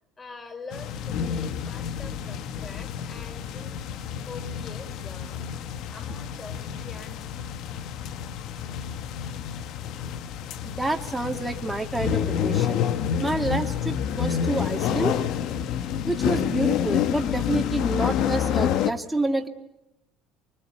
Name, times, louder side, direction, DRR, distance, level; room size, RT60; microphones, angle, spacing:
voice 1, 0.2-5.4 5.9-7.3, left 3 dB, 20° left, 6 dB, 4.9 m, -44 dB
sound 1, 0.7-18.9, left 9 dB, 60° left, 1.3 m, -28 dB
voice 2, 10.6-12.8 13.2-15.2 16.1-19.5, right 2 dB, 5° right, 3 dB, 2.1 m, -28 dB
25.0 x 23.0 x 9.9 m, 0.86 s
cardioid pair, 120°, 0 cm